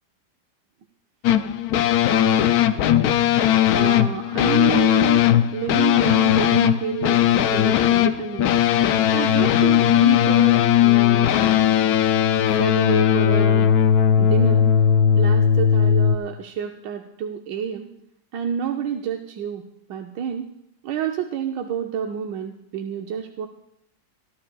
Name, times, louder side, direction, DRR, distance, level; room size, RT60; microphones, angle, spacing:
sound 1, 1.2-16.2, left 9 dB, 70° left, 0.9 m, -18 dB
voice 1, 2.1-2.5 3.7-5.2 5.5-8.5 9.1-11.7 12.6-13.7 14.2-14.6 15.1-17.9 18.3-19.6 19.9-20.5 20.8-23.5, right 8 dB, 75° right, 3 dB, 1.4 m, -29 dB
24.0 x 11.5 x 2.3 m, 0.74 s
omnidirectional pair, 2.0 m